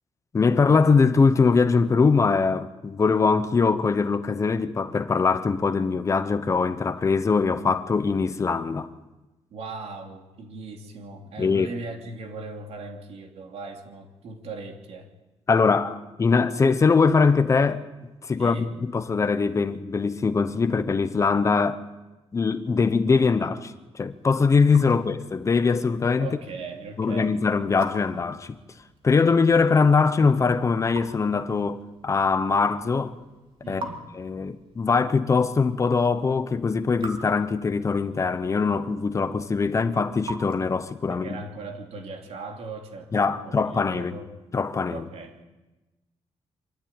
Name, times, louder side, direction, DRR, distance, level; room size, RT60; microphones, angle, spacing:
voice 1, 0.3-8.9 11.4-11.7 15.5-17.9 18.3-21.8 22.3-26.3 27.0-28.6 29.0-33.1 33.7-33.9 34.2-41.4 43.1-44.2 44.5-45.0, left 4 dB, 25° left, 1.0 m, -22 dB
voice 2, 9.5-15.1 18.4-18.7 24.9-25.1 26.2-27.4 33.6-34.1 41.1-44.3 44.9-45.4, right 3 dB, 70° right, 2.9 m, -39 dB
Raindrop / Drip, 24.0-41.2, right 2 dB, 50° right, 2.9 m, -46 dB
25.0 x 13.5 x 9.0 m
wide cardioid pair, 165°, 11 cm